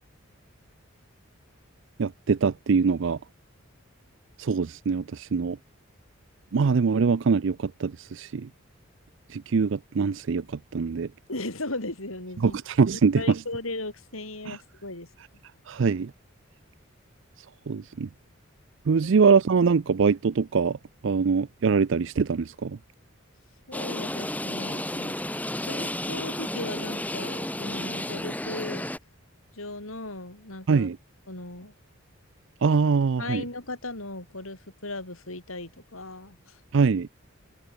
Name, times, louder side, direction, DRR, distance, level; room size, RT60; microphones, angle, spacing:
voice 1, 2.0-3.2 4.4-5.6 6.5-8.5 9.3-10.4 10.7-11.1 12.4-13.4 14.5-14.6 15.7-16.1 17.7-18.1 18.9-20.8 21.0-22.8 30.7-31.0 32.6-33.4 36.7-37.1, right 5 dB, 60° right, 0.4 m, -23 dB
voice 2, 11.3-12.6 12.9-15.1 19.0-19.1 23.7-25.2 25.7-28.9 29.5-30.9 31.3-31.7 33.2-36.6, left 2 dB, 80° left, 7.5 m, -37 dB
sound 1, 23.7-29.0, left 1 dB, 5° left, 3.3 m, -32 dB
head